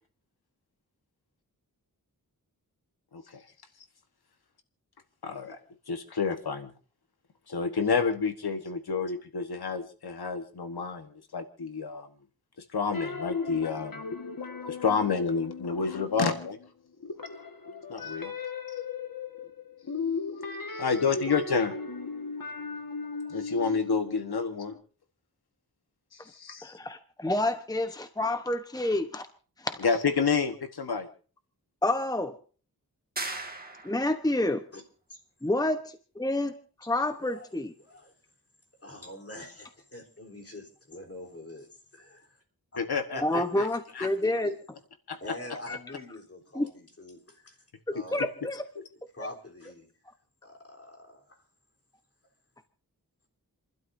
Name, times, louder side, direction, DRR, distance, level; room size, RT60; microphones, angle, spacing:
voice 1, 3.1-3.4 5.2-5.6 5.9-6.7 7.5-12.1 12.7-14.0 14.6-16.6 17.9-18.3 18.7-18.8 20.7-21.7 23.3-24.7 26.1-26.8 29.8-31.1 42.8-43.7 43.9-44.1 45.1-45.2 47.9-48.3, left 5 dB, 90° left, 7 dB, 1.3 m, -29 dB
sound 1, 12.9-16.7 17.0-24.8, left 4 dB, 65° left, 1.7 m, -37 dB
voice 2, 26.6-29.3 29.6-29.8 31.8-32.3 33.8-34.6 35.4-36.6 36.9-37.7 43.2-44.6 45.7-45.8 46.5-46.7 47.9-48.7, left 1 dB, 10° left, 8 dB, 1.0 m, -28 dB
sound 2, 33.2-34.2, right 2 dB, 25° right, 1.8 m, -37 dB
voice 3, 36.9-37.5 37.8-38.1 38.8-42.4 42.7-42.8 43.1-43.6 44.2-44.5 45.2-47.6 47.9-48.2 49.1-49.9 50.4-51.4, left 2 dB, 40° left, 1 dB, 3.7 m, -44 dB
30.0 x 12.0 x 2.7 m, 0.41 s
wide cardioid pair, 80°, 37 cm